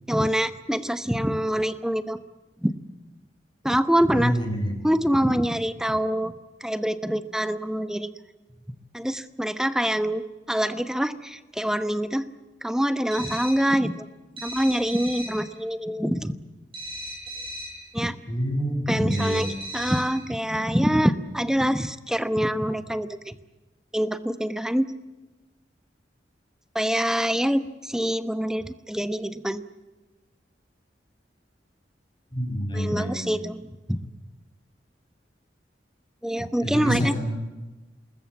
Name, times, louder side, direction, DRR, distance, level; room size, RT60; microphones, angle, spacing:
voice 1, 0.1-2.2 2.6-2.7 3.6-4.3 4.8-6.3 6.6-8.1 8.9-12.3 12.6-14.1 14.4-16.3 17.9-18.1 18.9-19.5 19.7-23.3 23.9-24.9 26.7-29.6 32.7-33.6 33.9-34.0 36.2-37.1, equal, 5° right, 11 dB, 1.0 m, -25 dB
voice 2, 4.1-4.7 18.3-19.4 32.3-33.4 36.6-37.3, equal, 25° left, 3 dB, 6.2 m, -27 dB
sound 1, 13.1-13.7 14.4-15.5 16.7-17.9 19.1-20.2, equal, 30° right, 6.0 m, -37 dB
27.5 x 20.5 x 8.4 m, 1.1 s
head